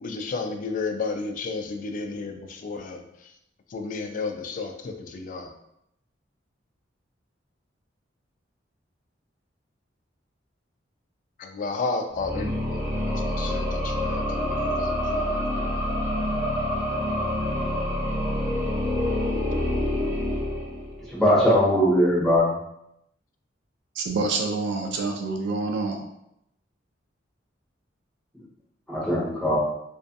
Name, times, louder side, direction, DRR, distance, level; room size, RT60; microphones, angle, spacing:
voice 1, 0.0-3.0 3.7-5.5 11.4-15.8, left 4 dB, 45° left, 5 dB, 0.3 m, -32 dB
sound 1, 12.1-21.2, left 1 dB, 20° right, 0.6 m, -27 dB
voice 2, 21.1-22.5 28.9-29.6, equal, ahead, -8 dB, 0.9 m, -20 dB
voice 3, 24.0-26.0, right 3 dB, 65° right, 3 dB, 0.3 m, -27 dB
2.6 x 2.4 x 2.2 m, 0.79 s
head